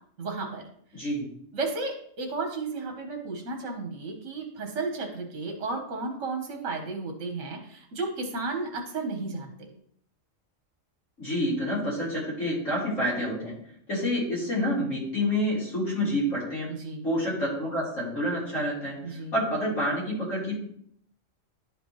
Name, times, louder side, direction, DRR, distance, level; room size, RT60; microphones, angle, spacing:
voice 1, 0.2-0.6 1.5-9.7 16.7-17.0 19.0-19.3, right 3 dB, 65° right, 3 dB, 1.5 m, -33 dB
voice 2, 0.9-1.3 11.2-13.5 13.9-16.7 17.0-20.5, equal, 75° left, -8 dB, 4.2 m, -28 dB
11.0 x 5.2 x 3.1 m, 0.64 s
omnidirectional pair, 1.3 m